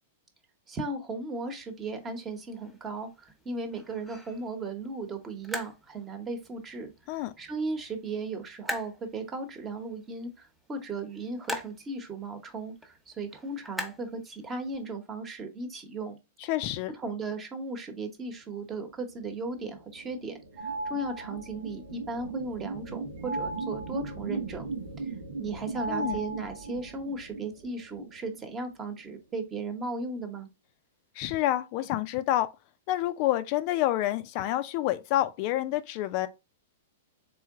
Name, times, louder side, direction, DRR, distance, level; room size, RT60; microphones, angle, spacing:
voice 1, 0.7-16.2 17.0-24.7 25.0-30.5, right 3 dB, 25° right, 1.0 m, -36 dB
sound 1, 1.6-14.8, left 1 dB, ahead, 0.9 m, -44 dB
voice 2, 16.5-16.9 25.9-26.2 31.2-32.5 32.9-36.3, left 14 dB, 45° left, 0.4 m, -28 dB
sound 2, 19.1-28.9, right 4 dB, 85° right, 1.1 m, -40 dB
sound 3, 20.6-21.5 23.2-24.2 25.7-26.9, right 2 dB, 60° right, 0.9 m, -36 dB
3.7 x 3.2 x 3.6 m
hypercardioid pair, 115°, 0 cm